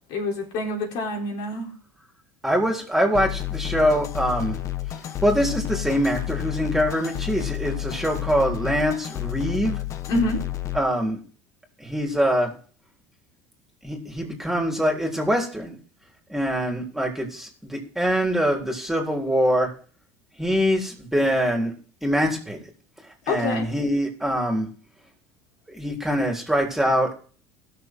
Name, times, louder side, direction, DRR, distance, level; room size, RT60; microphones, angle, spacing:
voice 1, 0.1-1.7 10.1-10.4 23.3-23.7, left 2 dB, 70° left, 0 dB, 4.1 m, -26 dB
voice 2, 2.4-4.6 5.2-9.8 10.7-11.2 11.8-12.5 13.8-15.8 16.3-19.7 20.4-21.7 22.0-22.6 23.3-24.7 25.7-27.2, equal, 5° right, 0 dB, 3.6 m, -24 dB
sound 1, 3.2-10.8, left 14 dB, 50° left, 1.2 m, -30 dB
16.0 x 6.8 x 4.6 m, 0.42 s
supercardioid pair, 105°, 7 cm